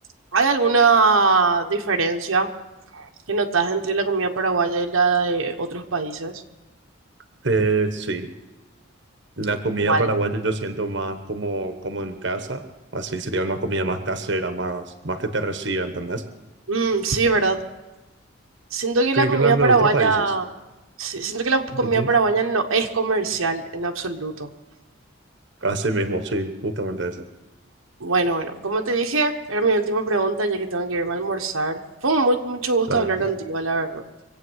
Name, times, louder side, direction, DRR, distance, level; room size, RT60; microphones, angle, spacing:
voice 1, 0.3-2.5 2.9-6.3 9.8-10.1 16.7-17.6 18.7-20.4 21.0-24.5 28.0-34.0, right 4 dB, 85° right, 3 dB, 1.2 m, -22 dB
voice 2, 7.4-8.3 9.4-12.6 12.9-16.2 19.1-20.2 21.8-22.1 25.6-27.2 32.9-33.3, right 2 dB, 60° right, 8 dB, 1.2 m, -25 dB
24.5 x 8.5 x 6.3 m, 1.1 s
head